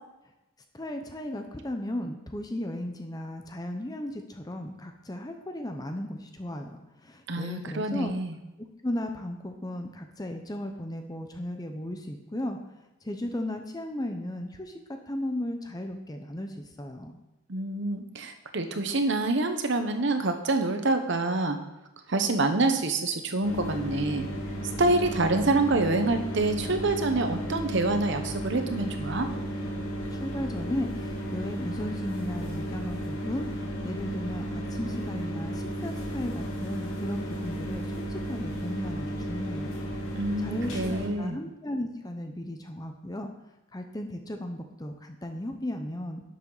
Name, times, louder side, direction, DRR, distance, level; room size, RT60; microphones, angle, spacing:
voice 1, 0.7-8.1 8.6-12.6 13.0-17.2 30.1-39.8 40.4-43.3 43.7-46.2, left 1 dB, 20° left, 5 dB, 0.7 m, -35 dB
voice 2, 7.3-8.3 17.5-21.6 22.1-24.2 24.8-29.3 40.2-41.4, right 2 dB, 60° right, 7 dB, 1.0 m, -26 dB
sound 1, 23.4-41.1, right 1 dB, 85° left, 2.3 m, -34 dB
11.5 x 7.3 x 4.0 m, 0.99 s
head